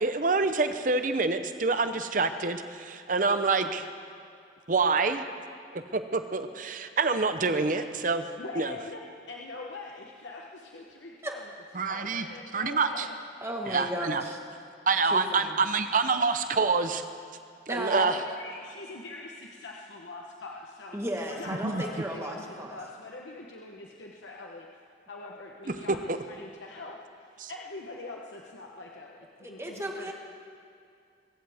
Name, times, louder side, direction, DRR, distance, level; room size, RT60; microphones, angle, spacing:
voice 1, 0.0-3.9 4.7-5.2 5.7-8.2 8.6-8.7 11.8-12.3 12.5-13.1 13.7-14.2 14.9-17.0 17.7-18.2 21.5-21.8 25.9-26.2 27.4-27.5, right 4 dB, 45° right, 9 dB, 0.8 m, -27 dB
voice 2, 8.4-11.5 11.8-13.1 13.6-13.7 15.5-15.6 17.9-21.0 21.3-30.1, left 2 dB, 85° left, -1 dB, 1.0 m, -43 dB
voice 3, 13.4-14.4 15.0-15.6 17.7-18.1 20.9-22.8 29.4-30.1, equal, 15° right, 1 dB, 1.4 m, -34 dB
24.0 x 15.5 x 3.6 m, 2.3 s
head